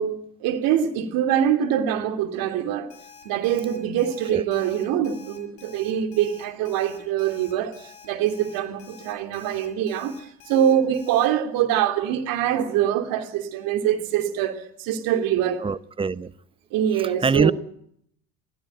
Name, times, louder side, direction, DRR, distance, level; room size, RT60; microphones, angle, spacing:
voice 1, 0.0-2.9 3.2-10.1 10.5-15.6 16.7-17.5, right 10 dB, 65° right, 3.2 m, -24 dB
Alarm, 2.9-11.3, left 7 dB, 65° left, 7.4 m, -48 dB
voice 2, 15.6-16.3 17.2-17.5, right 5 dB, 15° right, 0.8 m, -22 dB
21.0 x 15.5 x 9.3 m
hypercardioid pair, 75°, 38 cm